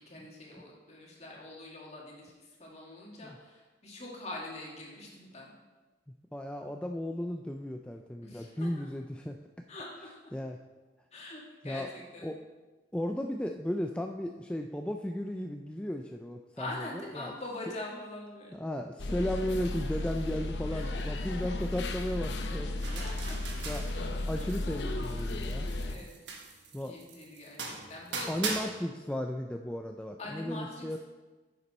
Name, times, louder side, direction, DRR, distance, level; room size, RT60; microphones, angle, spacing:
voice 1, 0.0-5.5 8.2-8.9 9.7-10.3 11.1-12.3 16.6-18.5 20.7-20.8 22.9-23.6 24.4-24.5 25.8-26.2 26.8-28.7 30.2-30.9, left 2 dB, 40° left, -2 dB, 2.1 m, -44 dB
voice 2, 6.3-9.4 10.3-10.6 11.6-11.9 12.2-12.4 12.9-17.4 18.5-23.0 23.6-23.9 24.3-25.7 26.7-26.9 28.3-31.0, left 1 dB, 5° left, 3 dB, 0.3 m, -35 dB
sound 1, 19.0-26.0, left 2 dB, 75° left, 0.8 m, -34 dB
sound 2, 22.8-24.7 25.0-28.6, right 4 dB, 80° right, 1.4 m, -40 dB
9.6 x 7.0 x 4.3 m, 1.2 s
head